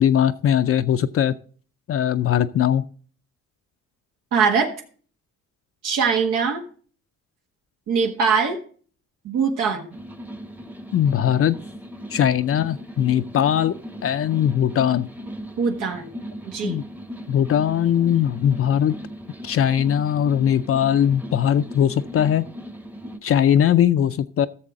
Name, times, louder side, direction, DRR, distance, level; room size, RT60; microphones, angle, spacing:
voice 1, 0.0-1.3 1.9-2.9 10.9-11.6 12.1-13.7 14.0-15.1 16.6-16.8 17.3-19.0 19.4-22.4 23.2-24.5, left 9 dB, 50° left, 10 dB, 0.5 m, -20 dB
voice 2, 4.3-4.7 5.8-6.6 7.9-8.6 9.2-9.9 15.6-16.1 16.4-16.8, right 5 dB, 85° right, 3 dB, 1.5 m, -22 dB
sound 1, 9.9-23.2, equal, 5° right, 0.8 m, -38 dB
14.5 x 6.6 x 3.7 m, 0.43 s
cardioid pair, 90°, 30 cm